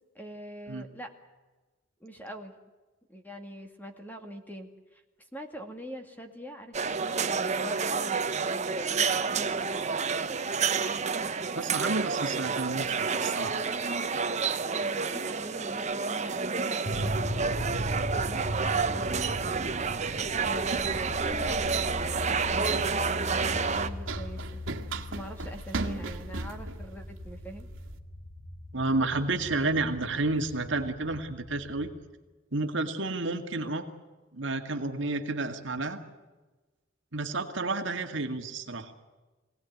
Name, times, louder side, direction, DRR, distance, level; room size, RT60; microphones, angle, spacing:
voice 1, 0.2-1.1 2.0-2.5 3.1-5.0 5.3-8.2 8.5-10.9 14.7-17.4 17.7-19.5 20.4-24.6 25.1-27.7, equal, 10° left, 4 dB, 2.2 m, -43 dB
sound 1, 6.7-23.9, right 5 dB, 35° right, 1.0 m, -29 dB
voice 2, 11.5-13.7 28.7-31.9 32.5-33.8 34.3-36.0 37.1-38.9, right 2 dB, 65° right, 5 dB, 2.0 m, -31 dB
sound 2, 16.8-31.9, left 1 dB, 60° left, 7.1 m, -38 dB
Run, 20.0-28.0, right 2 dB, 80° right, 2.0 m, -39 dB
24.0 x 18.0 x 9.4 m, 1.2 s
head